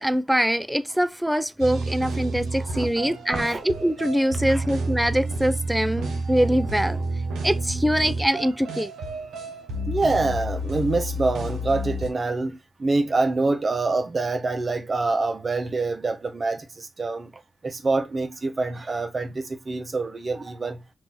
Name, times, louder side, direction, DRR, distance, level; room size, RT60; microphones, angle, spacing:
voice 1, 0.0-7.0 7.4-8.9, equal, 5° right, 0.5 m, -23 dB
sound 1, 1.6-12.1, right 2 dB, 90° right, 0.8 m, -30 dB
voice 2, 2.5-3.6 4.4-4.6 9.9-17.3 17.6-20.8, right 3 dB, 50° right, 0.7 m, -26 dB
3.0 x 2.5 x 3.7 m
supercardioid pair, 40°, 0 cm